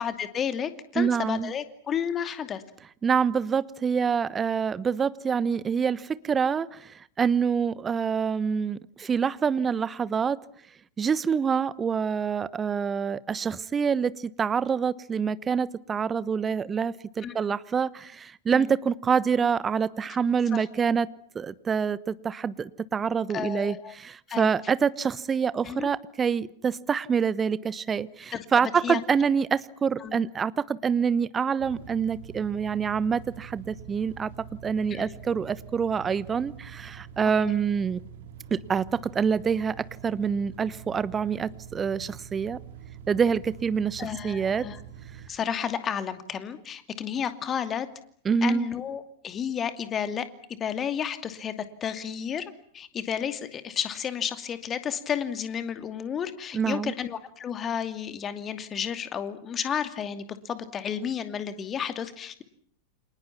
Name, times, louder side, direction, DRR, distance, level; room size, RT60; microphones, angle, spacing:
voice 1, 0.0-2.6 17.2-17.5 18.5-18.7 20.5-20.7 23.3-23.9 24.3-24.5 25.6-25.9 28.3-29.0 30.0-30.2 34.9-35.2 37.4-37.6 44.0-44.8 45.3-47.9 48.4-50.3 50.6-51.5 51.8-62.4, left 8 dB, 25° left, 9 dB, 2.6 m, -32 dB
voice 2, 0.9-1.5 3.0-10.4 11.0-21.1 21.3-34.3 34.6-38.0 38.5-42.6 43.1-44.6 48.2-48.7 56.5-56.9, right 6 dB, 20° right, 19 dB, 1.1 m, -26 dB
sound 1, 31.6-45.3, right 8 dB, 55° right, 3.4 m, -45 dB
29.5 x 27.0 x 6.0 m, 0.62 s
figure-of-eight pair, 90°, 0 cm